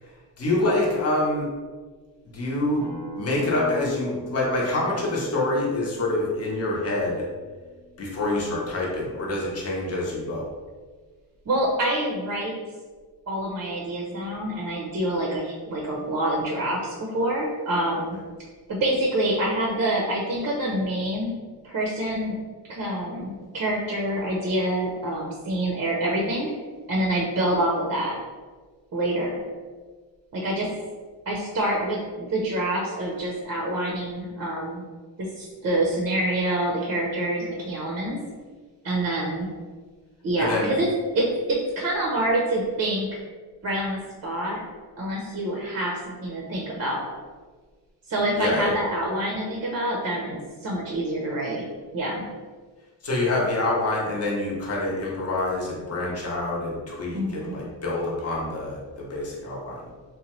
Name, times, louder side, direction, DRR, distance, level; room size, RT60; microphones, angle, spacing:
voice 1, 0.4-1.5 2.3-2.8 3.2-7.2 8.0-10.5 40.4-40.7 48.4-48.7 53.0-59.9, left 2 dB, 35° left, -4 dB, 0.9 m, -26 dB
Acoustic guitar, 2.8-8.0, left 2 dB, 5° left, 0.6 m, -42 dB
voice 2, 11.5-12.5 13.3-18.2 18.7-21.3 21.6-22.4 22.7-26.5 26.9-28.2 28.9-29.4 30.3-30.7 31.3-34.8 35.2-38.2 38.8-39.5 40.2-43.2 43.6-44.6 45.0-47.1 48.1-51.6 51.9-52.2 57.1-57.6, right 1 dB, 40° right, -2 dB, 0.6 m, -26 dB
2.8 x 2.2 x 3.0 m, 1.4 s
cardioid pair, 80°, 43 cm